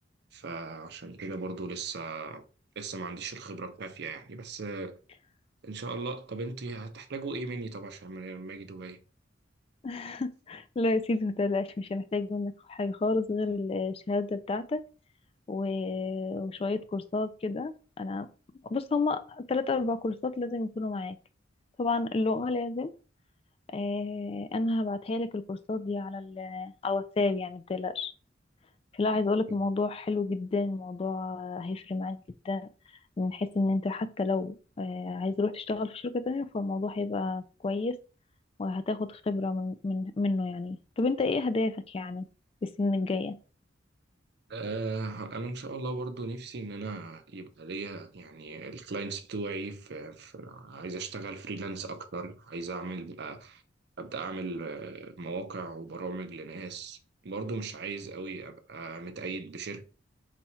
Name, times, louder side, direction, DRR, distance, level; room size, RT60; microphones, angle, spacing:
voice 1, 0.3-2.4 2.8-5.0 5.6-9.0 29.1-29.2 44.5-53.6 54.0-57.0 57.2-59.8, right 3 dB, 60° right, 0.6 m, -38 dB
voice 2, 9.8-14.8 15.5-18.3 18.7-21.2 21.8-22.9 23.7-28.1 28.9-32.2 32.4-32.7 33.2-38.0 38.6-42.3 42.6-43.3, left 3 dB, 30° left, 0.3 m, -30 dB
4.1 x 2.4 x 4.2 m
head